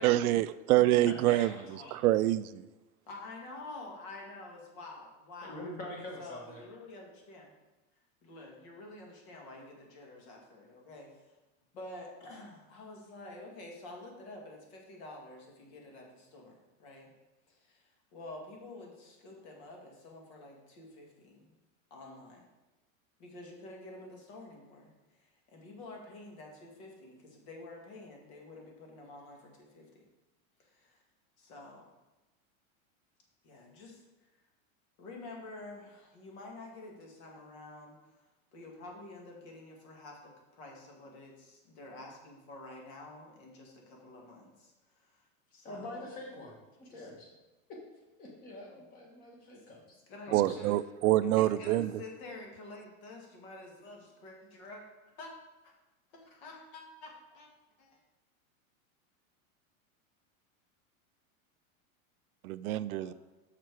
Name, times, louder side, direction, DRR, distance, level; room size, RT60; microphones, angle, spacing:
voice 1, 0.0-1.5 1.9-2.6 50.3-51.9 62.4-63.1, right 15 dB, 90° right, 15 dB, 0.5 m, -26 dB
voice 2, 0.8-2.1 5.4-6.6 45.6-46.6 46.9-47.3 47.7-47.8 48.2-50.0 50.3-50.7, left 1 dB, 20° left, -1 dB, 1.4 m, -45 dB
voice 3, 3.1-5.7 6.2-7.5 8.2-11.1 11.7-17.1 17.5-17.8 18.1-21.6 21.9-22.5 23.2-24.9 25.2-30.0 30.6-31.0 31.4-31.9 33.4-34.0 35.0-38.0 38.5-45.3 45.5-46.1 46.9-47.1 48.8-48.9 50.1-50.8 51.2-54.8 55.2-55.3 56.1-57.5 57.8-58.0 63.0-63.1, left 2 dB, 50° left, 0 dB, 2.0 m, -49 dB
6.6 x 6.0 x 4.7 m, 1.1 s
supercardioid pair, 175°, 42 cm